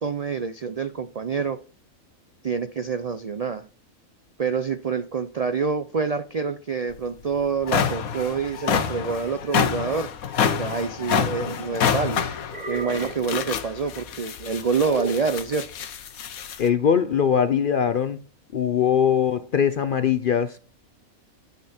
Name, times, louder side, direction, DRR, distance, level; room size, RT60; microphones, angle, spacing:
voice 1, 0.0-1.6 2.4-3.7 4.4-10.1 10.6-12.3 12.7-15.7, right 5 dB, 60° right, 0.4 m, -27 dB
sound 1, 6.9-7.0 7.4-16.7, left 7 dB, 90° left, 1.4 m, -27 dB
sound 2, 11.0-11.8 12.5-13.3 14.8-15.4, right 3 dB, 35° right, 1.1 m, -34 dB
voice 2, 16.6-18.2 18.5-20.7, left 8 dB, 60° left, 0.6 m, -21 dB
9.5 x 8.3 x 4.3 m
omnidirectional pair, 1.4 m